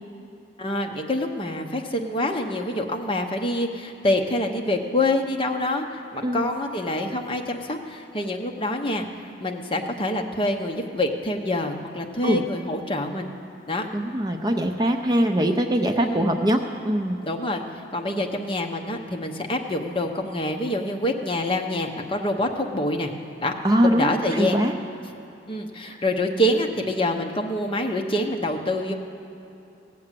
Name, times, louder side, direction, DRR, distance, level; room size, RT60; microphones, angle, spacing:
voice 1, 0.6-9.1 9.4-13.3 13.7-13.9 16.0-16.3 17.2-17.6 17.9-23.1 23.4-23.5 23.8-24.6 25.0-25.1 25.5-28.9, left 1 dB, 25° left, 3 dB, 0.9 m, -26 dB
voice 2, 13.9-17.2 23.6-24.7 25.8-26.0, equal, 20° right, 4 dB, 0.5 m, -22 dB
17.5 x 7.6 x 7.5 m, 2.9 s
head